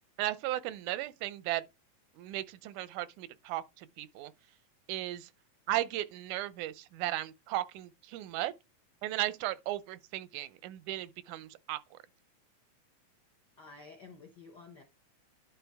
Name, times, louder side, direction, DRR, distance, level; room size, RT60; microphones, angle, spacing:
voice 1, 0.2-1.6 2.2-4.3 4.9-5.3 5.7-8.5 9.0-12.0, right 15 dB, 85° right, 2.1 m, -36 dB
voice 2, 13.6-14.8, left 4 dB, 65° left, 1.0 m, -51 dB
11.5 x 3.9 x 3.4 m
omnidirectional pair, 3.4 m